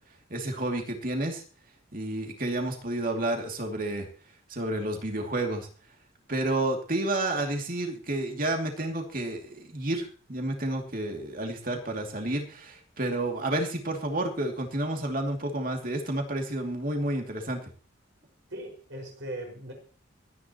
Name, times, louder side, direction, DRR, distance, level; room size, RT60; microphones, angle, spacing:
voice 1, 0.3-1.4 1.9-4.1 4.5-5.7 6.3-17.6, right 1 dB, 45° right, 3 dB, 2.6 m, -30 dB
voice 2, 18.5-19.7, right 1 dB, 65° right, 1 dB, 5.5 m, -39 dB
24.5 x 10.0 x 3.0 m, 0.39 s
head